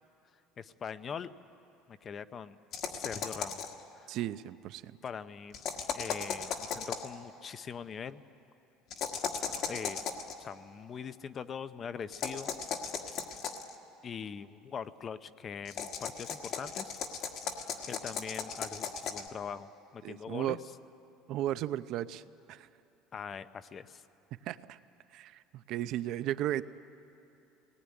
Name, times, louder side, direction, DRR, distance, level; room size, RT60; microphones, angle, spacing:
voice 1, 0.6-1.3 1.9-2.6 2.9-4.1 5.0-5.6 5.9-8.2 9.7-10.0 10.4-12.6 14.0-17.0 17.9-20.6 23.1-24.0, left 7 dB, 25° left, 13 dB, 0.6 m, -42 dB
sound 1, 2.7-3.8 5.5-7.1 8.9-10.3 12.1-13.7 15.7-19.3, left 6 dB, 45° left, 1.6 m, -37 dB
voice 2, 4.1-5.0 20.0-20.6 21.3-22.2 22.5-22.7 24.4-24.8 25.1-26.6, right 13 dB, 50° right, 14 dB, 0.6 m, -35 dB
23.0 x 19.5 x 9.7 m, 2.8 s
cardioid pair, 165°, 0 cm